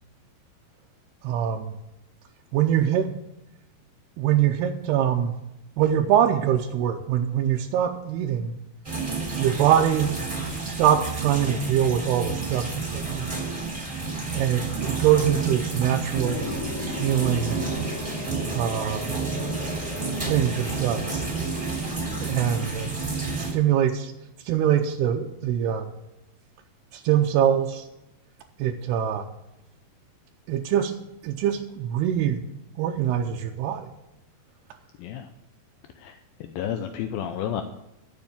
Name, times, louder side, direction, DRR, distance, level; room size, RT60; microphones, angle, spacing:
voice 1, 1.2-1.7 2.5-3.1 4.2-5.4 5.8-8.5 9.4-10.1 10.6-13.4 14.3-16.5 17.0-17.6 18.5-19.1 20.3-21.2 22.2-22.9 23.4-24.1 24.4-25.9 26.9-27.9 28.6-29.3 30.5-32.4 32.8-33.9, right 10 dB, 80° right, 1 dB, 2.7 m, -23 dB
sound 1, 8.8-23.5, right 4 dB, 10° right, 3.2 m, -31 dB
sound 2, 16.1-22.7, left 2 dB, 40° left, 2.9 m, -35 dB
voice 2, 35.0-35.3 36.0-37.6, left 9 dB, 80° left, 7 dB, 2.2 m, -32 dB
13.0 x 7.0 x 7.3 m, 0.89 s
omnidirectional pair, 4.8 m